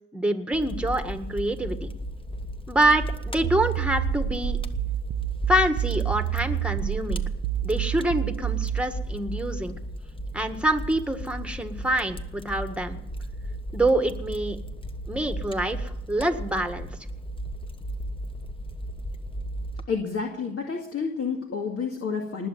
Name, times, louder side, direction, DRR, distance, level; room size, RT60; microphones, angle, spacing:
voice 1, 0.1-1.9 2.7-4.6 5.5-7.2 7.6-9.7 10.3-13.0 13.7-14.6 15.1-16.9, right 1 dB, 5° right, 7 dB, 1.8 m, -26 dB
Fire, 0.5-19.8, right 1 dB, 15° left, 1.3 m, -35 dB
sound 1, 3.4-8.9, right 13 dB, 60° right, 0.7 m, -29 dB
voice 2, 19.9-22.5, left 5 dB, 50° left, 1 dB, 2.3 m, -29 dB
19.5 x 7.0 x 9.3 m, 0.90 s
cardioid pair, 90°, 30 cm